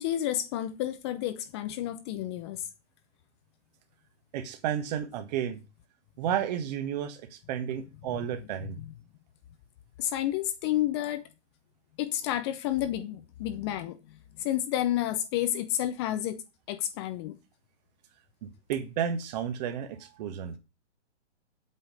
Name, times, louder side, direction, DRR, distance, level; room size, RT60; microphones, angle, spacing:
voice 1, 0.0-2.7 8.6-8.9 10.0-11.2 12.0-14.0 14.4-16.4 16.7-17.4, left 12 dB, 25° left, 0.7 m, -30 dB
voice 2, 4.3-5.6 6.2-8.8 18.4-20.5, right 9 dB, 35° right, 1.6 m, -32 dB
8.3 x 5.9 x 7.9 m
hypercardioid pair, 140°, 35 cm